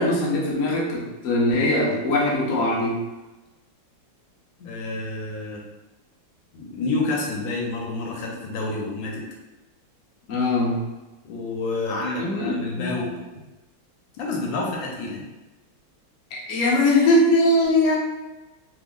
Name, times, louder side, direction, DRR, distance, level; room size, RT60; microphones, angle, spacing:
voice 1, 0.0-3.0 4.6-4.7 10.3-10.8 12.0-12.9 16.3-18.0, left 1 dB, 60° left, -4 dB, 0.8 m, -21 dB
voice 2, 4.6-5.6 6.5-9.2 11.2-13.1 14.2-15.2, left 2 dB, 75° left, -2 dB, 1.4 m, -29 dB
3.3 x 2.0 x 3.6 m, 1.1 s
omnidirectional pair, 2.2 m